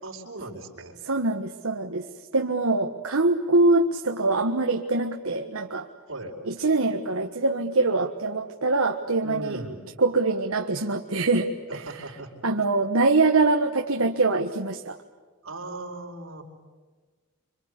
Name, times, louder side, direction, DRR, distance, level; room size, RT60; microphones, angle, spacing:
voice 1, 0.0-1.0 6.1-6.4 9.2-9.8 11.7-12.3 15.4-16.4, right 2 dB, 60° right, 2 dB, 4.9 m, -38 dB
voice 2, 1.0-2.1 2.3-5.9 6.5-9.6 10.0-12.0 12.4-15.0, right 3 dB, 80° right, 3 dB, 1.4 m, -24 dB
27.0 x 25.5 x 8.3 m, 1.3 s
head